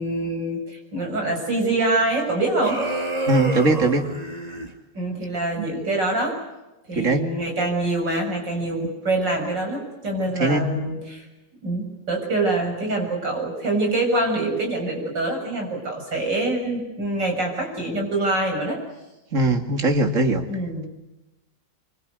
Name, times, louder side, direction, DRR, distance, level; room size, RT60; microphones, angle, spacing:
voice 1, 0.0-2.8 4.9-6.4 6.9-11.3 11.6-18.8 20.5-20.9, right 2 dB, 65° right, 2 dB, 7.9 m, -25 dB
sound 1, 2.6-4.7, right 2 dB, 20° right, 2.8 m, -28 dB
voice 2, 3.3-4.1 5.6-5.7 6.9-7.3 10.4-10.7 19.3-20.5, right 2 dB, 40° right, 5 dB, 2.7 m, -20 dB
26.0 x 24.5 x 8.2 m, 1.0 s
omnidirectional pair, 2.1 m